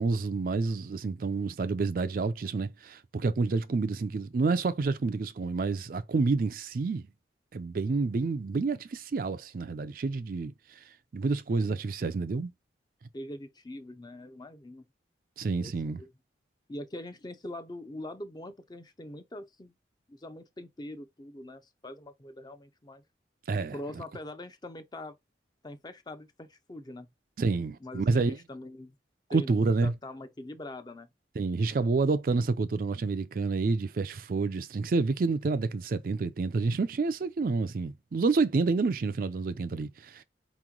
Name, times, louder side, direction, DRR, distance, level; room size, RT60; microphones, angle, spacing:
voice 1, 0.0-7.1 7.5-10.5 11.1-12.5 15.4-16.0 23.5-23.8 27.4-28.4 29.3-29.9 31.4-40.2, right 3 dB, 50° right, 0.4 m, -28 dB
voice 2, 13.1-14.8 15.6-16.1 16.7-19.7 20.1-23.0 23.7-25.2 25.6-27.1 27.8-28.9 29.3-31.1, left 1 dB, 20° left, 0.5 m, -43 dB
4.3 x 3.0 x 3.7 m
head